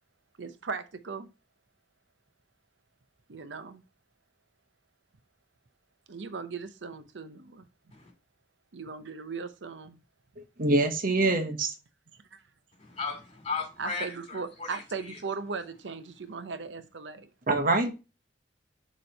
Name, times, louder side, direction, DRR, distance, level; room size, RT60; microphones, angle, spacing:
voice 1, 0.4-1.3 3.3-3.8 6.1-7.7 8.7-10.0 12.3-12.4 13.8-17.3, right 4 dB, 85° right, 0.7 m, -38 dB
voice 2, 10.6-11.7 17.5-17.9, right 2 dB, 50° right, 1.0 m, -24 dB
voice 3, 12.8-15.2, left 4 dB, 35° left, 2.6 m, -36 dB
6.8 x 3.1 x 5.4 m
head